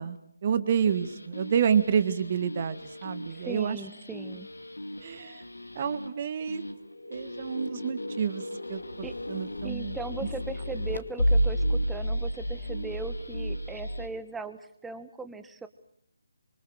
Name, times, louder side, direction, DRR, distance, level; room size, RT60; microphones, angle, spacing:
voice 1, 0.0-3.8 5.0-5.4 5.8-6.6 7.1-8.4 8.7-8.8 9.3-10.0, right 7 dB, 35° right, 13 dB, 1.8 m, -28 dB
sound 1, 0.8-14.1, equal, 85° left, 2.6 m, -33 dB
voice 2, 3.3-4.5 9.0-9.1 9.6-15.7, right 4 dB, 5° right, 11 dB, 1.3 m, -39 dB
26.5 x 24.5 x 6.5 m, 0.67 s
figure-of-eight pair, 150°, 0 cm